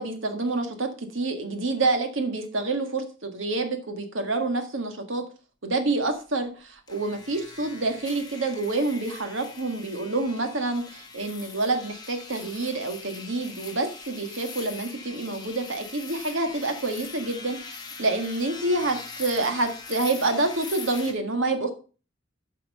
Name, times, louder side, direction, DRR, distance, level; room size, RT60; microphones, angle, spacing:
voice 1, 0.0-5.2 5.6-21.7, right 2 dB, 75° right, 6 dB, 1.7 m, -27 dB
sound 1, 6.9-21.1, left 4 dB, 20° left, 1.4 m, -42 dB
9.2 x 5.6 x 5.4 m, 0.36 s
head